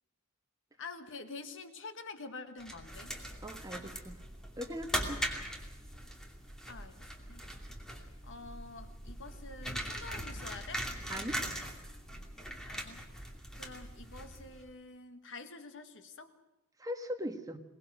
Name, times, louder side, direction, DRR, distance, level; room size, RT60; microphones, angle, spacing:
voice 1, 0.8-3.1 5.2-5.6 6.7-7.6 8.2-10.9 12.7-13.0 13.6-16.3, left 3 dB, 60° left, 9 dB, 1.8 m, -47 dB
sound 1, 2.6-14.7, right 1 dB, 5° left, 2.6 m, -41 dB
voice 2, 3.4-4.2 4.6-5.2 11.1-11.4 16.8-17.6, equal, 15° right, 6 dB, 1.5 m, -39 dB
22.5 x 19.5 x 6.4 m, 1.0 s
head